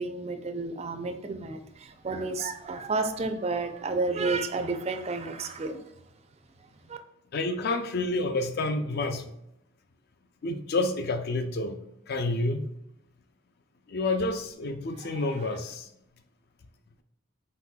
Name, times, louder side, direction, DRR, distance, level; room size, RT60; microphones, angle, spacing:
voice 1, 0.0-5.9 6.6-7.0 15.0-15.5, right 3 dB, 30° right, 7 dB, 0.4 m, -31 dB
voice 2, 7.3-9.3 10.4-11.8 12.1-12.7 13.9-15.9, left 2 dB, 50° left, 7 dB, 0.4 m, -29 dB
4.4 x 4.0 x 2.2 m, 0.82 s
head